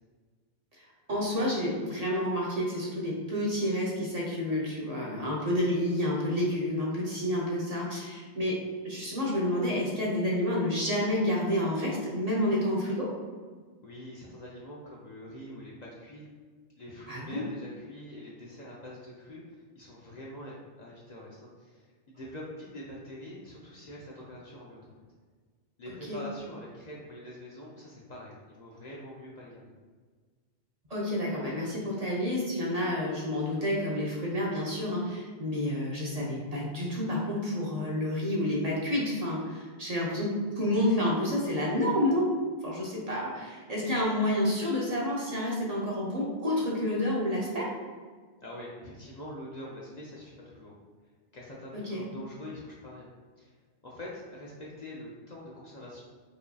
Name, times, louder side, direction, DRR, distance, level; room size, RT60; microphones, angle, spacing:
voice 1, 1.1-13.1 17.1-17.4 26.1-26.2 30.9-42.4 42.6-47.7 51.7-52.1, left 1 dB, 40° right, -5 dB, 0.7 m, -29 dB
voice 2, 13.8-16.3 16.8-24.9 25.8-29.7 48.4-50.8 51.3-53.1 53.4-53.5 53.8-56.0, left 1 dB, 50° left, -4 dB, 0.6 m, -44 dB
4.8 x 2.7 x 2.3 m, 1.5 s
omnidirectional pair, 1.1 m